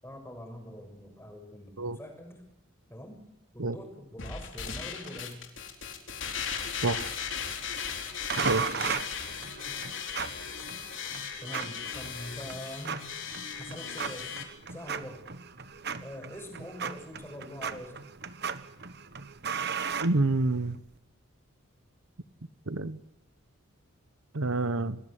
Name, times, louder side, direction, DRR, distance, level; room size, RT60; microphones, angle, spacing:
voice 1, 0.0-2.4 2.9-3.2 3.5-5.4 8.7-9.1 9.7-9.8 11.4-13.1 13.6-14.3 14.7-15.2 16.0-18.0, equal, 10° left, 4 dB, 6.5 m, -44 dB
sound 1, 4.2-14.4, left 7 dB, 60° left, 4.2 m, -37 dB
sound 2, 8.3-20.8, right 6 dB, 50° right, 1.3 m, -37 dB
voice 2, 20.0-20.7 22.7-23.0 24.3-25.0, right 2 dB, 75° right, 15 dB, 1.0 m, -27 dB
29.0 x 20.0 x 8.1 m, 0.87 s
head